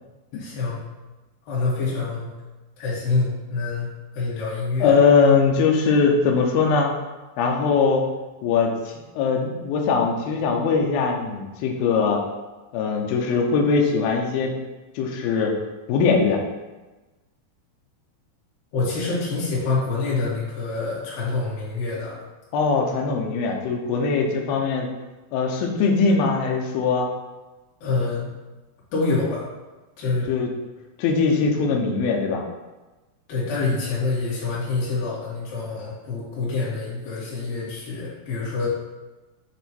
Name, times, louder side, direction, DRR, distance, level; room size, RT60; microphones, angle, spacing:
voice 1, 0.3-0.8 1.5-2.3 2.8-3.9 4.1-5.0 18.7-22.2 27.8-28.3 28.9-29.5 30.0-30.3 33.3-38.7, left 3 dB, 60° left, -8 dB, 3.5 m, -26 dB
voice 2, 4.8-6.9 7.4-8.0 8.4-12.2 12.7-14.6 15.0-15.5 15.9-16.4 22.5-24.9 25.3-27.1 30.3-30.5 31.0-32.4, left 5 dB, 80° left, 1 dB, 2.4 m, -21 dB
8.2 x 3.0 x 4.4 m, 1.1 s
omnidirectional pair, 4.7 m